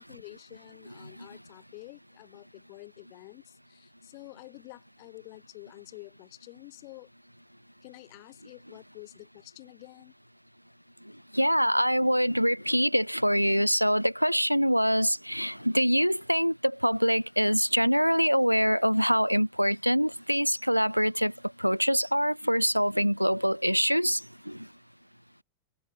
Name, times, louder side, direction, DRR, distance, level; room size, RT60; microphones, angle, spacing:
voice 1, 0.0-3.4 3.7-7.1 7.8-10.1, left 34 dB, 45° left, 5.6 m, -49 dB
voice 2, 0.9-1.3 11.3-21.3 21.6-24.7, equal, 90° right, 0.3 m, -25 dB
figure-of-eight pair, 90°, 0 cm